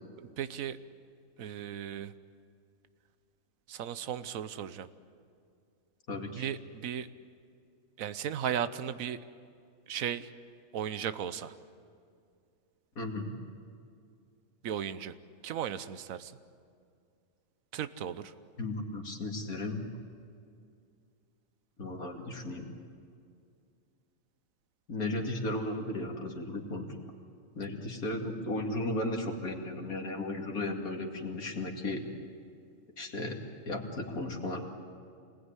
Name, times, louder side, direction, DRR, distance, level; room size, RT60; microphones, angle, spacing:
voice 1, 0.2-0.8 1.4-2.1 3.7-4.9 6.4-7.1 8.0-9.2 9.9-10.3 10.7-11.5 14.6-15.1 15.4-16.3 17.7-18.3, right 9 dB, 70° right, 13 dB, 1.3 m, -36 dB
voice 2, 6.1-6.5 13.0-13.3 18.6-19.8 21.8-22.7 24.9-26.9 27.5-32.0 33.0-33.4 33.7-34.7, left 2 dB, 85° left, 1 dB, 3.0 m, -35 dB
27.0 x 20.5 x 9.8 m, 2.3 s
omnidirectional pair, 1.5 m